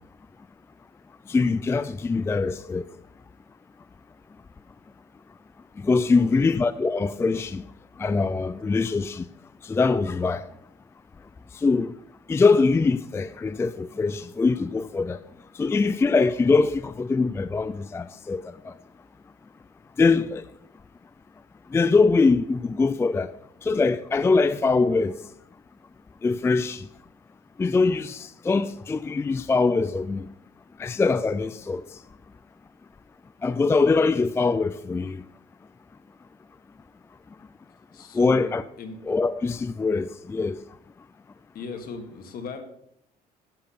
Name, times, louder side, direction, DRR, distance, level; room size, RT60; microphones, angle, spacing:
voice 1, 1.3-2.8 5.8-7.6 8.0-9.3 9.6-10.4 11.5-11.9 12.3-15.2 15.6-18.7 20.0-20.4 21.7-23.3 23.6-25.1 26.2-26.9 27.6-30.3 30.8-31.8 33.4-35.2 38.1-38.6 39.1-40.6, left 4 dB, 15° left, 0.3 m, -23 dB
voice 2, 6.1-6.6 37.9-39.0 41.5-42.6, left 4 dB, 60° left, 1.7 m, -38 dB
10.5 x 7.0 x 4.3 m
cardioid pair, 110°, 17 cm